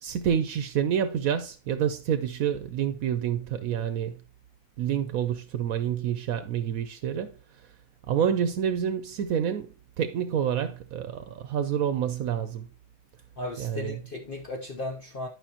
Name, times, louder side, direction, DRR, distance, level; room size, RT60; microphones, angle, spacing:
voice 1, 0.0-4.2 4.8-7.7 8.1-12.7 13.6-14.0, right 9 dB, 75° right, 1.1 m, -28 dB
voice 2, 13.4-15.3, left 2 dB, 45° left, 0.9 m, -35 dB
11.5 x 5.4 x 2.8 m
omnidirectional pair, 1.5 m